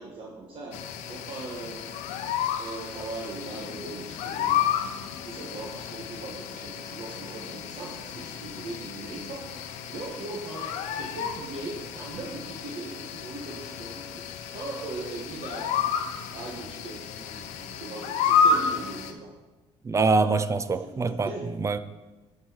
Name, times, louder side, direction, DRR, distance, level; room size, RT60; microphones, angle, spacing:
voice 1, 0.0-2.1 2.6-4.9 5.2-15.8 16.3-19.3 20.7-21.5, right 3 dB, 50° right, 1.5 m, -39 dB
sound 1, 0.7-19.1, left 6 dB, 85° left, 0.7 m, -31 dB
voice 2, 19.9-21.3 21.6-21.8, right 4 dB, 25° right, 0.4 m, -24 dB
12.5 x 4.6 x 4.6 m
cardioid pair, 110°, 12 cm